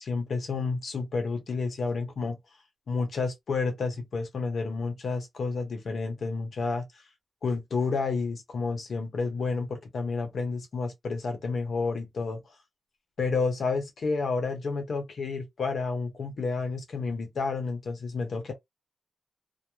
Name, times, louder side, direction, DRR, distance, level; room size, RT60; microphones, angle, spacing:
voice 1, 0.0-2.4 2.9-6.8 7.4-12.4 13.2-18.5, left 4 dB, 75° left, 0.9 m, -30 dB
2.3 x 2.1 x 3.0 m
wide cardioid pair, 85°, 0 cm